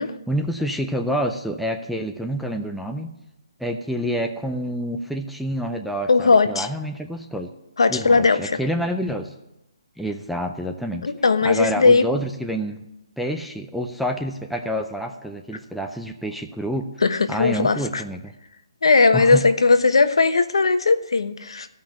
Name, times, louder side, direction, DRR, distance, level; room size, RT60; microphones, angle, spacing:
voice 1, 0.3-3.2 3.6-7.5 7.9-9.3 10.0-11.1 11.4-12.8 13.2-16.9 17.3-18.3 19.1-19.4, equal, ahead, 2 dB, 0.3 m, -28 dB
voice 2, 6.1-6.7 7.8-8.6 11.0-12.1 17.0-18.0 18.8-21.7, left 4 dB, 80° left, 10 dB, 1.1 m, -18 dB
13.5 x 5.6 x 8.9 m, 0.91 s
hypercardioid pair, 175°, 3 cm